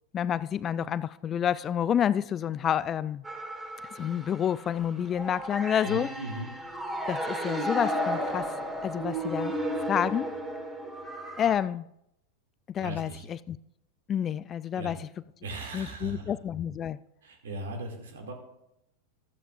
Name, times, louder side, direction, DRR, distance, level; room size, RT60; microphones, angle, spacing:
voice 1, 0.1-3.2 3.9-6.1 7.1-8.5 8.8-9.5 9.9-10.3 11.4-11.9 12.7-13.6 14.1-15.1 15.7-17.0, left 9 dB, 30° left, 0.3 m, -29 dB
sound 1, 3.2-11.6, right 1 dB, 10° right, 2.1 m, -34 dB
voice 2, 5.8-6.5 12.8-13.3 14.7-14.9 15.4-16.3 17.2-18.3, right 1 dB, 70° right, 2.4 m, -38 dB
14.5 x 13.0 x 2.5 m
figure-of-eight pair, 90°, 0 cm